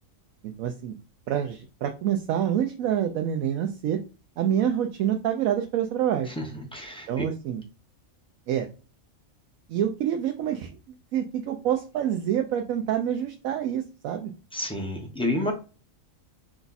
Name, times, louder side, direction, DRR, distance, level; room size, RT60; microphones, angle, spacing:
voice 1, 0.4-0.9 1.3-4.0 4.4-6.3 7.1-7.6 8.5-8.7 9.7-10.7 11.1-14.3, right 10 dB, 90° right, 4 dB, 1.0 m, -27 dB
voice 2, 6.3-7.3 14.5-15.5, left 1 dB, 5° left, 1 dB, 0.7 m, -30 dB
4.9 x 2.3 x 4.0 m, 0.34 s
omnidirectional pair, 1.4 m